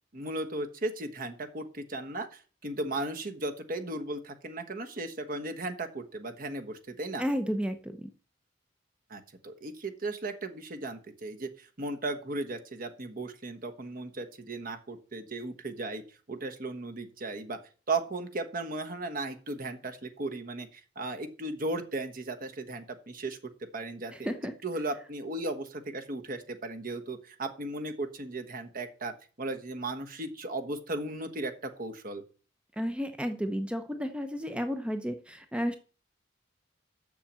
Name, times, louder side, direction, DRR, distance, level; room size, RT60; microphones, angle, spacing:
voice 1, 0.1-7.2 9.1-16.0 16.3-17.6 17.9-24.3 24.6-29.1 29.4-32.2, right 2 dB, 50° right, 6 dB, 1.2 m, -36 dB
voice 2, 7.2-8.1 24.1-24.5 32.8-35.8, equal, 5° right, 8 dB, 0.7 m, -32 dB
7.2 x 6.7 x 7.4 m, 0.38 s
head